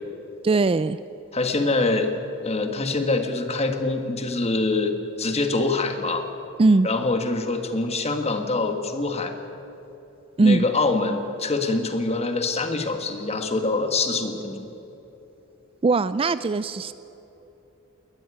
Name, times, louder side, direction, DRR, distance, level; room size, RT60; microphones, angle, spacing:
voice 1, 0.4-1.0 6.6-6.9 10.4-10.6 15.8-16.9, right 3 dB, 25° right, 15 dB, 0.4 m, -20 dB
voice 2, 1.3-2.1 2.4-6.3 6.8-9.4 10.4-14.7, left 3 dB, 30° left, 6 dB, 1.7 m, -25 dB
20.0 x 13.5 x 9.9 m, 3.0 s
head